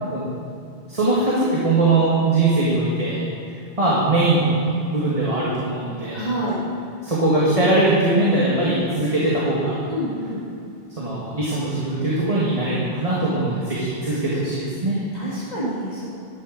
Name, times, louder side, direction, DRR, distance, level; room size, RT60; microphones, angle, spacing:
voice 1, 0.9-3.2 3.8-4.6 4.9-6.3 7.0-9.7 11.0-15.0, right 2 dB, 35° right, -7 dB, 1.8 m, -21 dB
voice 2, 6.1-6.6 9.9-10.4 15.1-16.1, right 1 dB, 40° left, -8 dB, 2.4 m, -27 dB
12.0 x 9.5 x 3.9 m, 2.7 s
omnidirectional pair, 1.1 m